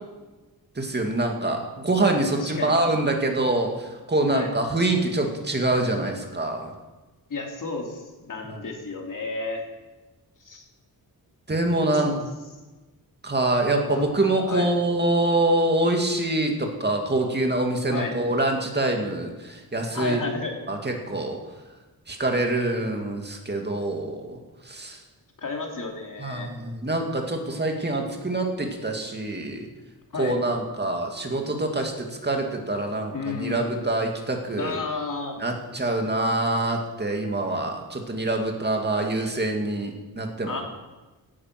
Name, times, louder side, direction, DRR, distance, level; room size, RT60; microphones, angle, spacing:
voice 1, 0.8-6.7 8.5-8.6 11.5-12.1 13.2-20.2 20.7-21.4 22.1-24.4 24.6-25.0 26.2-29.7 30.2-34.8 35.4-40.6, right 2 dB, 25° right, 2 dB, 2.4 m, -25 dB
voice 2, 2.4-2.8 4.3-4.5 7.3-9.6 10.4-10.6 11.9-12.2 13.9-14.1 14.5-14.7 17.9-18.1 19.9-20.6 25.4-26.5 30.1-30.4 33.1-33.7 34.6-35.4 40.4-40.6, left 4 dB, 55° left, 1 dB, 2.9 m, -32 dB
17.0 x 11.0 x 6.1 m, 1.2 s
wide cardioid pair, 145°, 38 cm